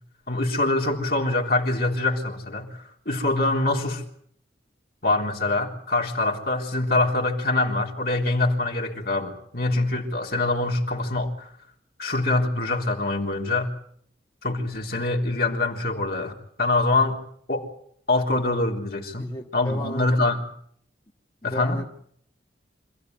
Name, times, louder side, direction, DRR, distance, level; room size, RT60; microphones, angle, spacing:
voice 1, 0.3-4.0 5.0-11.5 12.0-13.7 14.4-17.2 17.5-17.7 18.1-20.4 21.4-21.8, left 2 dB, 55° left, 3.6 m, -24 dB
voice 2, 19.2-20.1 21.4-21.8, equal, 25° left, 1.7 m, -34 dB
26.5 x 16.0 x 9.5 m
head